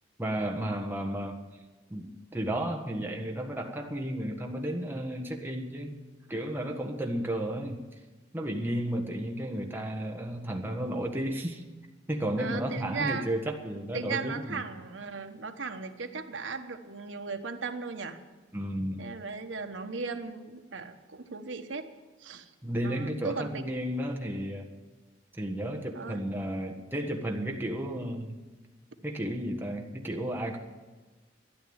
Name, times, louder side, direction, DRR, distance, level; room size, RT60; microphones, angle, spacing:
voice 1, 0.2-1.4 1.9-2.1 2.3-6.0 6.3-7.8 8.3-11.6 12.1-14.6 18.5-19.0 22.6-24.7 25.3-28.3 29.0-30.6, right 1 dB, 10° right, 2 dB, 1.5 m, -33 dB
voice 2, 12.4-13.3 13.9-18.2 19.0-21.9 22.2-22.5 22.8-23.6 25.9-26.2, right 4 dB, 80° right, 6 dB, 1.2 m, -37 dB
13.0 x 11.0 x 8.8 m, 1.3 s
head